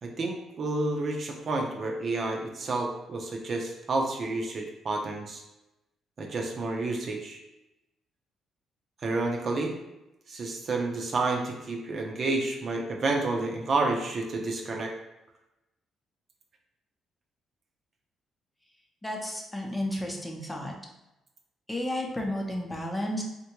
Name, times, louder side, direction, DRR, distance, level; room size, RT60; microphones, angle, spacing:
voice 1, 0.0-5.4 6.2-7.4 9.0-9.7 10.3-14.9, right 2 dB, 50° right, 1 dB, 0.5 m, -30 dB
voice 2, 19.0-20.7 21.7-23.2, left 1 dB, 10° left, 0 dB, 0.6 m, -32 dB
3.6 x 2.2 x 2.9 m, 0.94 s
cardioid pair, 90°, 0 cm